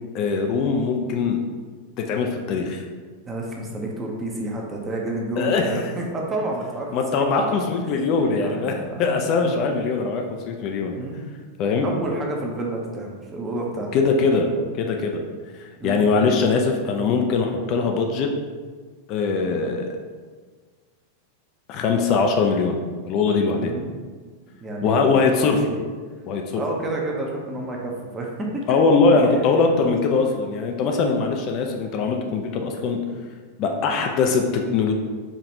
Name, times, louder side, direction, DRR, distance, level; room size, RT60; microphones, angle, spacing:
voice 1, 0.1-1.4 2.0-2.8 5.4-5.8 6.9-8.7 9.0-10.9 11.6-11.9 13.9-14.5 14.8-15.2 15.8-18.3 19.1-20.0 21.7-22.8 23.1-23.7 24.8-25.6 26.3-26.6 28.7-33.0 33.6-34.9, left 4 dB, 40° left, 2 dB, 0.4 m, -21 dB
voice 2, 3.3-7.6 8.4-9.7 10.9-11.3 11.8-14.0 15.8-16.2 23.6-24.0 24.6-25.1 25.4-25.8 26.5-28.8 29.1-29.4 29.7-30.0, right 1 dB, 20° right, -1 dB, 0.7 m, -30 dB
5.0 x 2.4 x 2.7 m, 1.5 s
figure-of-eight pair, 90°, 0 cm